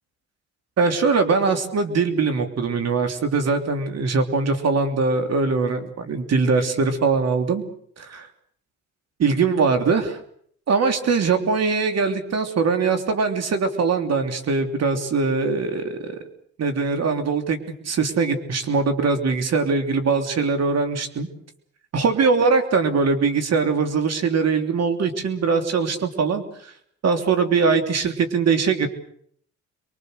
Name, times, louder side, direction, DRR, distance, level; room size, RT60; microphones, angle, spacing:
voice 1, 0.8-7.6 8.0-8.3 9.2-10.2 10.7-16.2 16.6-17.6 17.8-21.3 21.9-26.7 27.0-28.9, right 4 dB, 55° right, 7 dB, 3.3 m, -21 dB
27.5 x 23.0 x 6.6 m, 0.64 s
cardioid pair, 90°, 30 cm